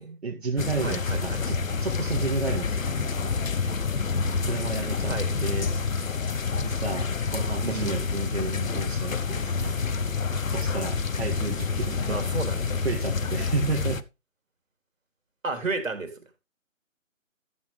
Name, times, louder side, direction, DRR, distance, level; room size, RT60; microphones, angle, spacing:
voice 1, 0.2-3.5 4.4-5.1 5.4-5.7 6.6-9.8 10.5-12.2 12.8-14.0, right 4 dB, 50° right, 2.0 m, -32 dB
sound 1, 0.6-14.0, left 4 dB, 75° left, 1.0 m, -28 dB
voice 2, 0.8-1.4 5.1-5.3 7.6-8.0 12.0-12.8 15.4-16.1, right 3 dB, 70° right, 3.3 m, -32 dB
13.5 x 7.8 x 3.4 m
figure-of-eight pair, 165°, 40 cm